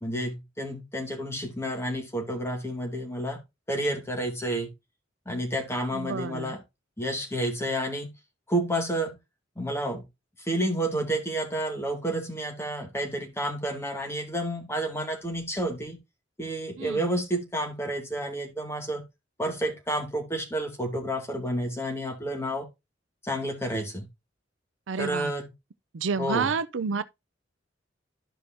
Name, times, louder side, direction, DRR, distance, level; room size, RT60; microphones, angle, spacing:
voice 1, 0.0-3.4 3.7-4.7 5.3-6.6 7.0-8.1 8.5-9.2 9.6-10.1 10.4-16.0 16.4-19.0 19.4-22.7 23.2-24.1 25.0-25.5 26.2-26.5, right 1 dB, 15° left, 2.3 m, -30 dB
voice 2, 5.9-6.5 16.8-17.0 24.9-25.3 25.9-27.0, right 5 dB, 80° right, 0.5 m, -29 dB
12.5 x 5.2 x 2.7 m
head